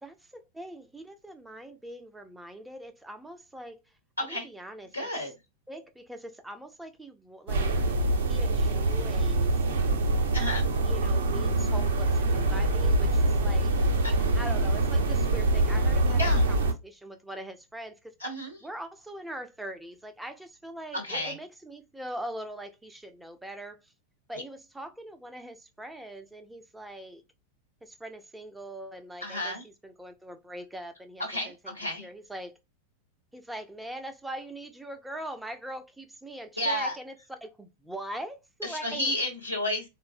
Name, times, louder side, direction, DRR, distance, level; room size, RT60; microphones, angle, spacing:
voice 1, 0.0-3.8 4.2-5.3 5.7-7.8 8.3-9.6 10.8-13.8 14.3-18.1 18.6-23.9 24.3-27.2 27.8-31.7 32.0-32.5 33.3-39.1, right 1 dB, 5° right, 0.5 m, -42 dB
voice 2, 4.9-5.3 10.3-10.7 16.1-16.4 18.2-18.6 20.9-21.4 29.2-29.6 31.2-32.1 36.6-37.0 38.6-39.8, left 1 dB, 85° left, 1.0 m, -31 dB
sound 1, 7.5-16.7, right 2 dB, 60° right, 0.6 m, -25 dB
3.6 x 2.0 x 2.6 m
figure-of-eight pair, 90°, 0 cm